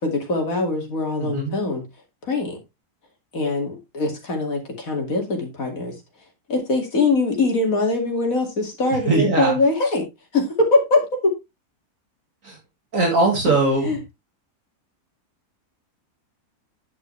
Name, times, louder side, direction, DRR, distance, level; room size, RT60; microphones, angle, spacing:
voice 1, 0.0-1.8 2.2-2.6 3.3-5.9 6.5-10.1 10.3-11.4 13.8-14.0, left 3 dB, 65° left, 2 dB, 2.9 m, -22 dB
voice 2, 1.2-1.6 9.1-9.6 12.4-12.6 12.9-13.9, right 3 dB, 60° right, 1 dB, 2.3 m, -20 dB
10.0 x 6.2 x 3.2 m, 0.22 s
omnidirectional pair, 1.6 m